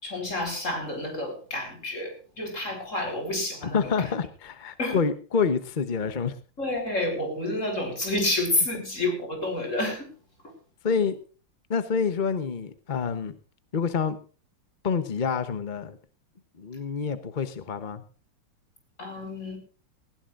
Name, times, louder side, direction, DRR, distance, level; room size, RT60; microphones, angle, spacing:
voice 1, 0.0-4.1 4.8-5.1 6.6-10.1 10.4-10.5 19.0-19.6, left 1 dB, 35° left, 4 dB, 5.0 m, -29 dB
voice 2, 3.7-6.4 10.8-11.2 11.7-13.4 13.7-14.2 14.8-16.0 16.6-18.0, left 5 dB, 50° left, 12 dB, 0.5 m, -27 dB
19.5 x 16.0 x 2.5 m, 0.36 s
omnidirectional pair, 2.4 m